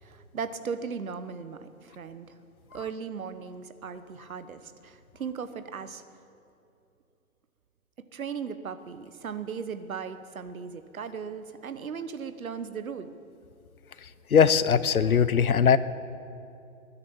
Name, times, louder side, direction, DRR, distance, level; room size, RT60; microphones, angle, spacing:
voice 1, 0.0-2.3 2.7-6.0 8.1-13.1, right 6 dB, 75° right, 11 dB, 1.3 m, -37 dB
voice 2, 14.3-15.8, left 7 dB, 85° left, 15 dB, 0.9 m, -20 dB
20.5 x 9.6 x 7.3 m, 2.6 s
figure-of-eight pair, 125°, 42 cm